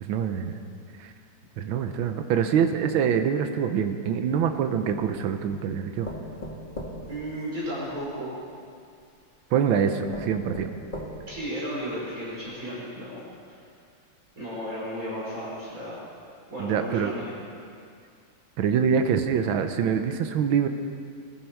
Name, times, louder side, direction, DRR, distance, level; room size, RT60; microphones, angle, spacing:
voice 1, 0.0-0.6 1.6-6.1 9.5-10.7 16.6-17.1 18.6-20.7, right 7 dB, 80° right, 7 dB, 1.6 m, -25 dB
sound 1, 4.4-5.3 6.0-8.0 9.0-9.1 9.7-9.8 10.1-11.5 12.0-12.1 12.4-12.5, left 1 dB, 25° left, 2.1 m, -39 dB
voice 2, 7.1-8.3 11.2-13.2 14.3-16.0 16.5-17.3, equal, 40° right, -8 dB, 6.0 m, -34 dB
22.0 x 14.0 x 4.6 m, 2.3 s
omnidirectional pair, 2.2 m